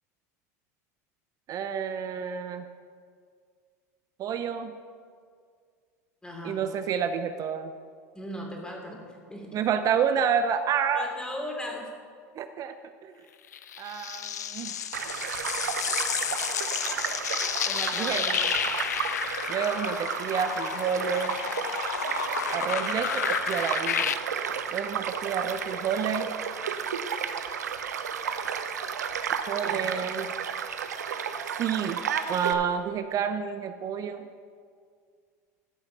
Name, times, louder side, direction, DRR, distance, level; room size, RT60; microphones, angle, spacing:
voice 1, 1.5-2.6 4.2-4.8 6.4-7.7 9.5-11.1 12.3-12.7 13.0-13.3 13.8-14.7 17.9-18.3 19.5-21.4 22.5-24.1 24.7-26.3 29.5-30.3 31.6-32.0 32.3-34.3, right 7 dB, 40° right, 9 dB, 0.6 m, -29 dB
voice 2, 6.2-6.6 8.1-9.5 10.9-11.9 17.7-18.4 29.6-30.3, left 1 dB, 10° left, 0 dB, 2.8 m, -38 dB
sound 1, 13.5-24.1, left 9 dB, 90° left, 0.4 m, -31 dB
Child speech kid speaking / Stream / Car passing by, 14.9-32.5, right 7 dB, 85° right, 0.7 m, -32 dB
13.5 x 5.8 x 6.3 m, 2.1 s
hypercardioid pair, 90°, 9 cm